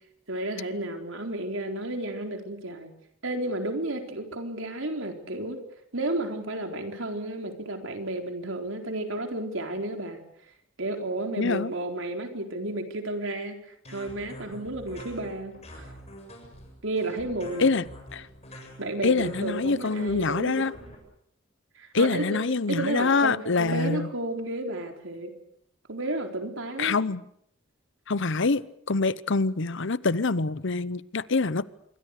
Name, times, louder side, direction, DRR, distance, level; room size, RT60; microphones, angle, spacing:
voice 1, 0.3-2.9 3.2-5.6 5.9-10.2 10.8-13.6 13.9-15.9 16.8-17.8 18.8-20.9 21.8-22.4 22.7-25.3 25.9-27.0, right 1 dB, 70° right, 4.1 m, -32 dB
voice 2, 11.4-11.7 17.6-17.8 18.1-18.3 19.0-20.7 21.9-24.1 26.8-27.2 28.1-28.6 28.9-31.6, left 4 dB, 65° left, 0.9 m, -25 dB
sound 1, 13.8-21.0, equal, 30° left, 7.5 m, -46 dB
27.0 x 23.5 x 6.6 m
head